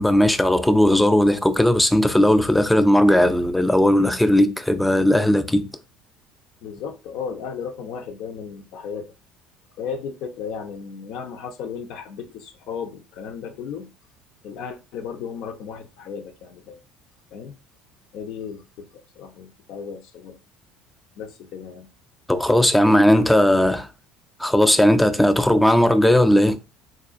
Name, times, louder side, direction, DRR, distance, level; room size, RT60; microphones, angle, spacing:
voice 1, 0.0-5.7 22.3-23.9 24.4-26.6, left 1 dB, 5° left, 0.4 m, -17 dB
voice 2, 6.6-9.1 9.8-13.9 14.4-16.8 17.3-17.5 18.1-20.4 21.2-21.9 22.6-23.3, left 6 dB, 65° left, 0.5 m, -35 dB
3.7 x 2.4 x 2.4 m
hypercardioid pair, 65°, 0 cm